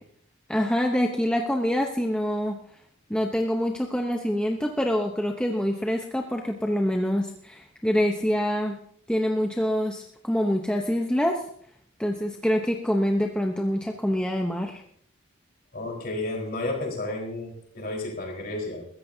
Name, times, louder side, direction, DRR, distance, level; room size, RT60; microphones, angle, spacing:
voice 1, 0.5-2.6 3.1-8.8 9.1-11.4 12.0-14.8, equal, 5° left, 2 dB, 0.8 m, -25 dB
voice 2, 15.7-18.9, left 2 dB, 40° left, 0 dB, 4.4 m, -32 dB
21.5 x 14.5 x 2.8 m, 0.63 s
head